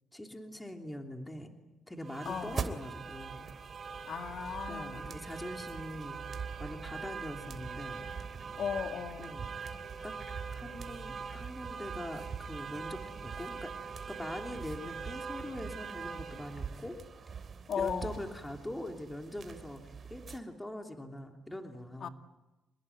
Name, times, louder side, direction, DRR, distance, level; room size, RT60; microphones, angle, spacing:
voice 1, 0.1-1.5 1.9-3.5 4.7-6.2 6.6-8.0 9.2-9.5 10.0-10.1 10.5-13.7 14.1-17.0 17.7-22.1, left 1 dB, 10° left, 3.2 m, -43 dB
sound 1, 2.0-20.4, right 5 dB, 50° right, 3.2 m, -42 dB
voice 2, 2.3-2.7 4.1-5.1 8.6-9.3 17.7-18.2 22.0-22.1, left 7 dB, 65° left, 2.0 m, -36 dB
27.5 x 21.0 x 9.5 m
cardioid pair, 80°, 0 cm